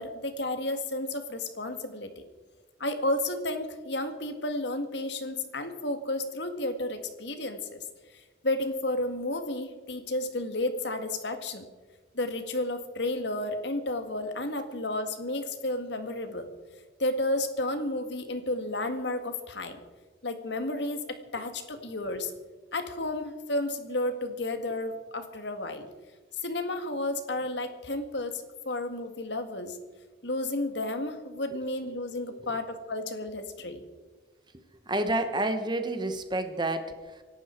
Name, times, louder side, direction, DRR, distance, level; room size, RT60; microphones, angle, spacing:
voice 1, 0.0-2.2 2.8-7.8 8.1-11.7 12.1-16.5 17.0-19.8 20.2-22.3 22.7-25.9 26.4-29.8 30.2-33.8, left 2 dB, 65° left, 7 dB, 1.9 m, -32 dB
voice 2, 34.5-37.2, right 1 dB, 25° right, 8 dB, 1.3 m, -30 dB
26.5 x 12.0 x 4.5 m, 1.3 s
head